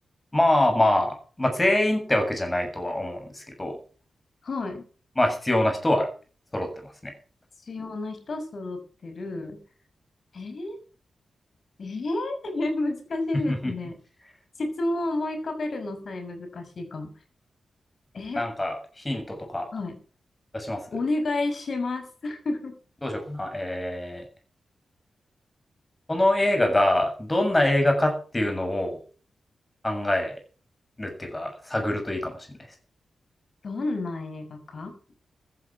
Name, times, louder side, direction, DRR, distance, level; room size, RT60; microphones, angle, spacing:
voice 1, 0.3-3.8 5.2-6.1 6.5-7.1 13.5-13.7 18.3-19.7 20.5-20.8 23.0-24.2 26.1-29.0 29.8-30.3 31.0-32.5, left 1 dB, 15° left, 4 dB, 7.3 m, -24 dB
voice 2, 4.4-4.9 7.7-9.6 10.3-10.8 11.8-14.0 14.6-17.1 18.1-18.4 19.7-20.0 20.9-22.7 33.6-35.0, left 2 dB, 55° left, 6 dB, 6.5 m, -30 dB
15.0 x 12.5 x 6.5 m, 0.39 s
wide cardioid pair, 110°, 0 cm